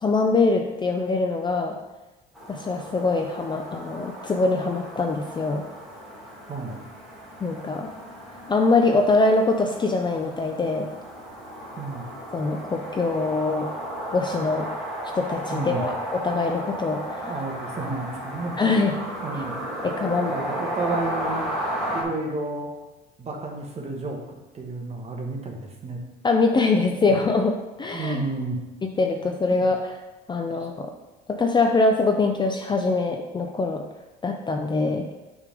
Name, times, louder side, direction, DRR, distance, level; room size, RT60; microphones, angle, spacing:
voice 1, 0.0-1.8 2.5-5.6 7.4-7.9 8.5-10.9 12.3-13.7 14.1-14.7 15.2-17.3 18.6-19.0 19.3-19.4 19.8-20.3 26.2-28.2 28.8-29.9 30.3-30.9 31.3-33.8 34.2-35.1, left 3 dB, 20° left, 3 dB, 0.5 m, -23 dB
sound 1, 2.3-22.0, equal, ahead, 1.6 m, -34 dB
voice 2, 6.5-6.8 11.8-12.1 15.5-15.8 17.2-18.5 19.2-19.6 20.1-21.5 21.9-22.7 23.2-24.2 24.5-26.0 27.1-27.2 27.9-28.6 29.6-29.7 30.6-30.7, right 3 dB, 30° right, 1 dB, 1.3 m, -31 dB
6.7 x 3.6 x 5.0 m, 1.1 s
cardioid pair, 115°, 21 cm